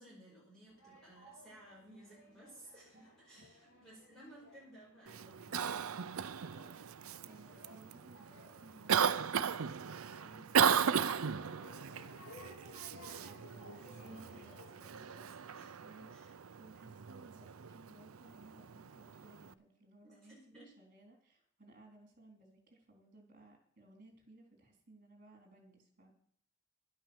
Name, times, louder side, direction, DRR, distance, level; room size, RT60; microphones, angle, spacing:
voice 1, 0.0-6.5 13.0-15.7 16.1-16.3 20.0-20.7, right 1 dB, ahead, -6 dB, 5.0 m, -58 dB
sound 1, 0.7-14.9, left 1 dB, 70° left, 6.7 m, -59 dB
Cough, 5.1-19.5, right 7 dB, 80° right, 0.6 m, -36 dB
voice 2, 7.3-12.3 15.8-26.1, right 2 dB, 40° right, 2 dB, 4.0 m, -60 dB
11.5 x 9.0 x 7.2 m, 0.62 s
head